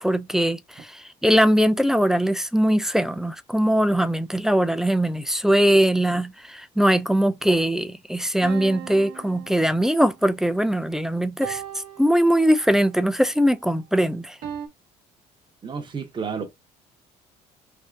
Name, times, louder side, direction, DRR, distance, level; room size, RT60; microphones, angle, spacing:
voice 1, 0.0-11.6 12.0-14.4, equal, 5° right, 0.3 m, -21 dB
sound 1, 8.4-10.2 11.4-12.8 14.4-14.7, right 9 dB, 65° right, 0.9 m, -38 dB
voice 2, 15.6-16.5, right 6 dB, 30° right, 0.9 m, -31 dB
3.4 x 2.6 x 2.6 m
cardioid pair, 110°, 17 cm